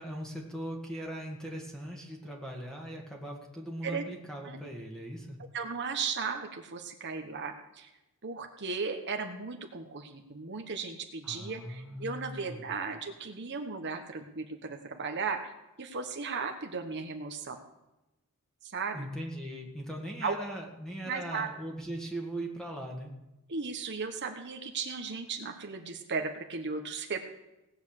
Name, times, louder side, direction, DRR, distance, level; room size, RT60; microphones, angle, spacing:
voice 1, 0.0-5.4 11.2-12.7 18.9-23.1, right 1 dB, 5° left, -1 dB, 1.9 m, -40 dB
voice 2, 5.5-7.9 8.2-15.5 15.8-17.6 18.6-19.1 20.2-20.4 21.1-21.5 23.5-27.4, right 5 dB, 50° right, 5 dB, 1.3 m, -36 dB
18.0 x 8.1 x 6.6 m, 0.96 s
head